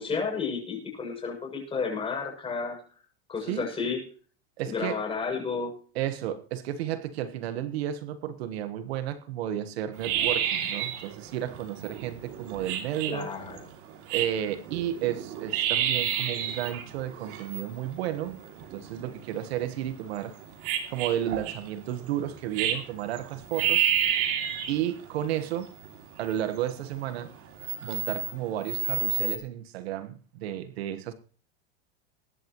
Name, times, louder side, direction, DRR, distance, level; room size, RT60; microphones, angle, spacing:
voice 1, 0.0-2.8 3.3-4.0 4.6-5.7 13.1-13.6, left 5 dB, 15° left, 7.2 m, -31 dB
voice 2, 4.6-5.0 5.9-13.3 14.1-18.4 18.7-20.3 20.9-23.9 24.7-25.7 26.2-27.3 27.8-31.1, right 11 dB, 70° right, 1.4 m, -32 dB
sound 1, 9.9-29.4, right 9 dB, 45° right, 2.7 m, -31 dB
22.0 x 11.0 x 3.1 m
supercardioid pair, 135°, 32 cm